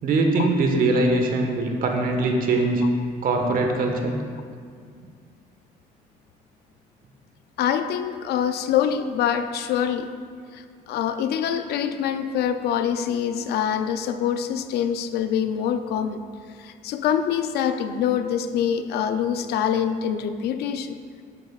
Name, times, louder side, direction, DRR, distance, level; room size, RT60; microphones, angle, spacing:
voice 1, 0.0-2.8 3.2-4.2, right 2 dB, 55° right, 3 dB, 1.4 m, -22 dB
voice 2, 7.6-10.1 10.5-16.2 16.6-21.0, left 8 dB, 75° left, 9 dB, 0.5 m, -25 dB
11.5 x 9.2 x 2.4 m, 2.1 s
cardioid pair, 110°, 17 cm